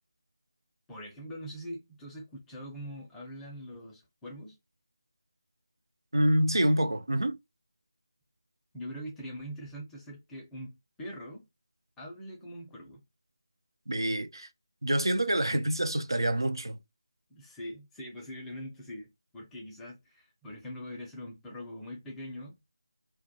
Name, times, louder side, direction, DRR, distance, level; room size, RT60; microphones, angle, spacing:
voice 1, 0.9-4.6 8.7-11.4 12.0-13.0 17.3-22.6, equal, 5° left, 0.5 m, -43 dB
voice 2, 6.1-7.4 13.9-14.5 14.8-16.8, right 1 dB, 85° right, 0.4 m, -27 dB
2.2 x 2.1 x 2.6 m
figure-of-eight pair, 160°, 2 cm